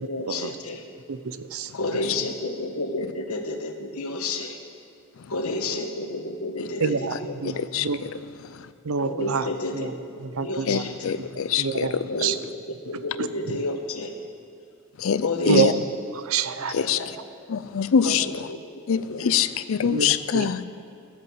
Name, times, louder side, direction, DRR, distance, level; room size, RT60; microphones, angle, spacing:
voice 1, 0.0-0.8 1.7-4.6 5.3-7.6 9.0-11.1 12.1-12.4 12.7-14.1 15.2-15.7 16.7-17.1 18.0-18.6 18.9-19.4, left 2 dB, 90° left, 4 dB, 1.3 m, -31 dB
voice 2, 1.1-1.7 6.8-7.2 7.4-8.0 8.8-9.5 9.7-9.9 10.2-10.8 11.6-11.9 12.2-12.3 13.2-13.3 15.5-15.7 16.1-16.7 19.8-20.6, right 5 dB, 70° right, 12 dB, 0.6 m, -26 dB
voice 3, 7.4-8.1 8.5-8.7 10.7-12.1 15.0-15.7 16.7-17.0 17.5-18.3 18.9-20.6, left 7 dB, 65° left, 13 dB, 0.4 m, -24 dB
12.5 x 7.9 x 7.9 m, 2.4 s
head